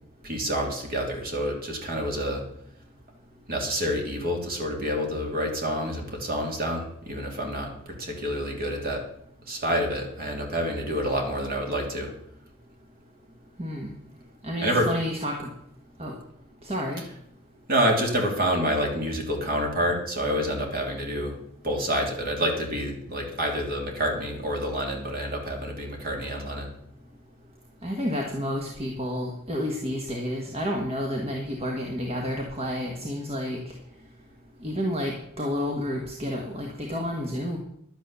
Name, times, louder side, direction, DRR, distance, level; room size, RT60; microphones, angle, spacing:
voice 1, 0.2-2.4 3.5-9.0 9.5-12.1 14.6-14.9 17.7-21.4 21.6-26.7, equal, 45° right, 1 dB, 3.1 m, -28 dB
voice 2, 13.6-13.9 14.4-15.5 16.0-16.1 16.6-17.0 27.8-33.6 34.6-37.6, equal, 30° right, 1 dB, 1.6 m, -30 dB
11.5 x 9.2 x 6.9 m, 0.75 s
head